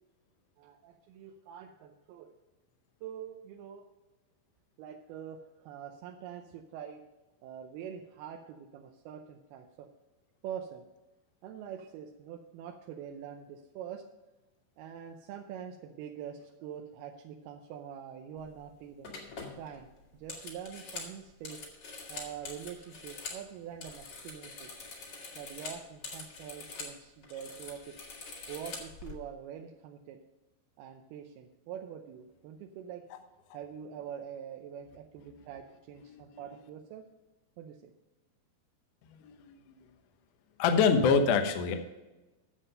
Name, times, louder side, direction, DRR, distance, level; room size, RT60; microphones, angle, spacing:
voice 1, 0.6-2.3 3.0-3.9 4.8-7.0 7.4-9.9 10.4-10.8 11.4-14.0 14.8-19.1 19.6-19.9 20.1-21.7 22.1-24.7 25.4-28.0 28.5-30.2 30.8-33.0 33.5-37.1 37.6-37.9, right 8 dB, 80° right, 3 dB, 2.5 m, -44 dB
sound 1, 18.4-18.6 19.0-23.4 23.7-27.0 27.2-29.1, left 4 dB, 45° left, 2.3 m, -44 dB
voice 2, 39.2-39.5 40.6-41.7, left 5 dB, 70° left, 6 dB, 2.0 m, -25 dB
10.0 x 7.5 x 5.4 m, 1.1 s
omnidirectional pair, 4.8 m